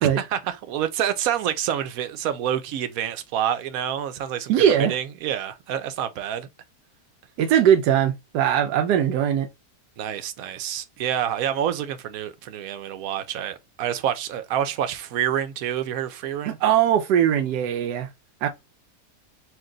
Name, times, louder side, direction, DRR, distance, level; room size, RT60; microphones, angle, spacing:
voice 1, 0.0-4.5 4.8-6.5 10.0-16.6, right 10 dB, 70° right, 1.0 m, -27 dB
voice 2, 4.5-5.0 7.4-9.5 16.5-18.1 18.4-18.5, right 9 dB, 90° right, 1.2 m, -20 dB
4.5 x 2.6 x 3.7 m
omnidirectional pair, 1.7 m